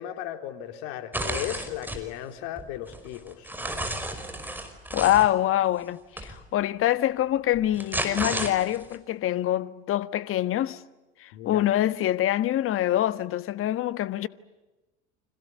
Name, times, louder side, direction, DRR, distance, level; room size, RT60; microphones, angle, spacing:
voice 1, 0.0-3.5 11.3-11.6, left 12 dB, 60° left, 3.4 m, -36 dB
sound 1, 1.1-2.0 2.6-5.3 6.2-6.3 7.5-8.9, right 1 dB, 5° right, 5.4 m, -32 dB
voice 2, 4.9-10.8 11.2-14.3, left 13 dB, 40° left, 1.5 m, -25 dB
30.0 x 26.0 x 6.8 m
hypercardioid pair, 80°, 33 cm